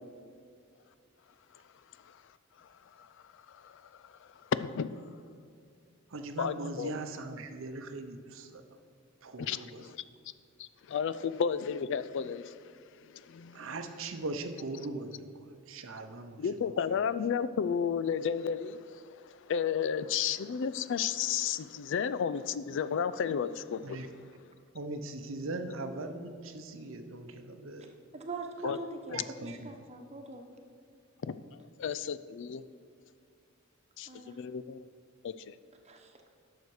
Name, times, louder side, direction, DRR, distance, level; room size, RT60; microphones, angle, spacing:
voice 1, 3.0-5.1 6.4-6.9 9.4-10.0 10.6-13.6 16.4-24.0 28.6-28.8 29.1-29.2 31.2-31.4 31.8-32.6 34.0-34.9 35.2-35.6, left 7 dB, 60° left, 15 dB, 0.4 m, -33 dB
voice 2, 6.1-8.6 9.2-9.8 13.5-16.5 23.8-24.1 24.7-28.0 29.1-29.7, right 2 dB, 65° right, 7 dB, 0.7 m, -40 dB
voice 3, 28.1-30.5 34.1-34.4 35.8-36.2, right 2 dB, 30° right, 3 dB, 1.1 m, -42 dB
11.0 x 6.5 x 4.8 m, 2.3 s
head